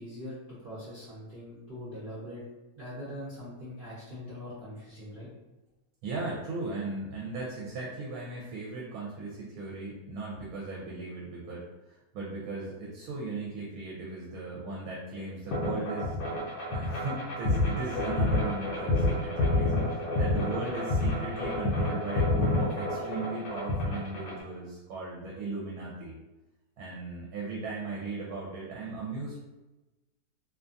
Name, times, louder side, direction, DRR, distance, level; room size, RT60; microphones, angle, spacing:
voice 1, 0.0-2.4 2.8-5.3, left 1 dB, 50° right, -9 dB, 0.6 m, -42 dB
voice 2, 6.0-16.2 16.7-26.1 26.8-29.4, right 3 dB, 75° right, -4 dB, 1.0 m, -37 dB
sound 1, 15.5-24.4, left 2 dB, 75° left, 1.1 m, -28 dB
2.6 x 2.3 x 2.5 m, 1.1 s
omnidirectional pair, 1.7 m